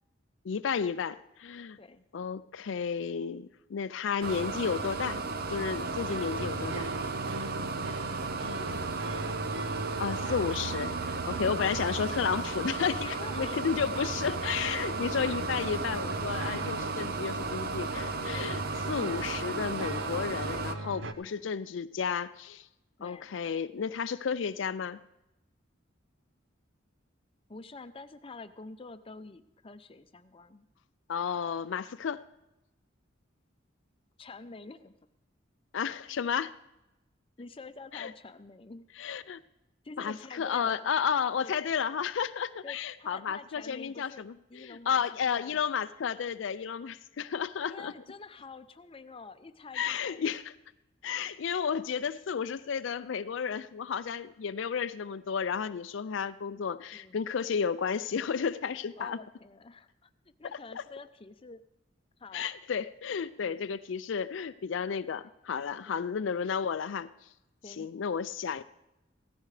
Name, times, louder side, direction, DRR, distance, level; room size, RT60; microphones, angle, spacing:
voice 1, 0.4-1.8 2.1-5.2 5.5-6.9 10.0-22.7 23.0-25.0 31.1-32.2 35.7-36.5 37.9-38.1 39.0-39.4 40.0-47.9 49.7-50.4 51.0-59.2 62.3-67.1 67.7-68.6, left 6 dB, 70° left, 13 dB, 0.4 m, -32 dB
sound 1, 4.2-20.7, right 3 dB, 50° right, 0.7 m, -34 dB
sound 2, 5.8-21.1, right 2 dB, 75° right, 0.8 m, -40 dB
voice 2, 8.5-9.5 13.0-13.6 14.0-14.4 21.2-21.5 23.0-23.3 27.5-30.7 34.2-34.9 37.4-38.9 39.8-40.9 41.4-41.5 42.6-45.6 47.7-50.3 56.9-57.2 59.0-60.1 60.4-61.6 62.2-62.4 65.9-66.2 67.6-67.9, left 3 dB, 30° left, 10 dB, 0.6 m, -48 dB
16.5 x 13.5 x 3.3 m, 0.93 s
head